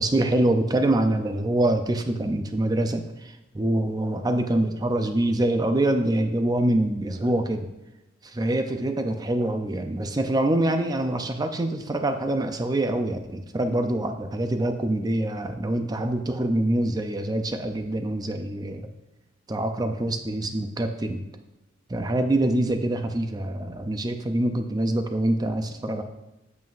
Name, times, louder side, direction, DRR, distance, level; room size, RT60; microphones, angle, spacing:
voice 1, 0.0-7.7 8.2-18.8 19.5-21.2 21.9-26.0, right 1 dB, 20° right, 6 dB, 0.4 m, -25 dB
8.1 x 7.2 x 2.5 m, 1.0 s
head